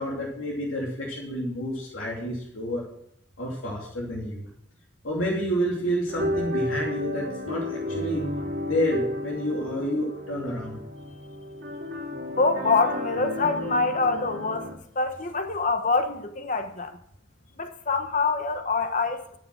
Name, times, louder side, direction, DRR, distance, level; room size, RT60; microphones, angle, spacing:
voice 1, 0.0-2.9 3.4-4.5 5.0-8.2 8.6-10.8, equal, 90° left, 2.7 m, -29 dB
sound 1, 6.1-14.7, left 1 dB, 45° right, 2.8 m, -32 dB
voice 2, 12.4-14.7 14.9-17.0 17.6-19.2, left 3 dB, 40° left, 1.2 m, -25 dB
12.5 x 7.0 x 6.1 m
head